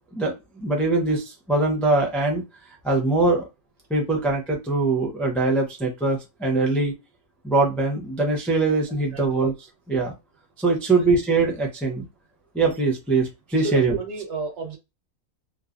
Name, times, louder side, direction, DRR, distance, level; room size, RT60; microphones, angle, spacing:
voice 1, 0.1-2.4 2.8-3.5 3.9-6.9 7.4-9.5 9.9-10.1 10.6-12.0 12.5-14.0, right 3 dB, ahead, 0.5 m, -22 dB
voice 2, 9.1-9.5 10.9-11.0 13.6-14.8, right 3 dB, 55° right, 1.3 m, -32 dB
3.0 x 2.0 x 2.5 m
omnidirectional pair, 1.5 m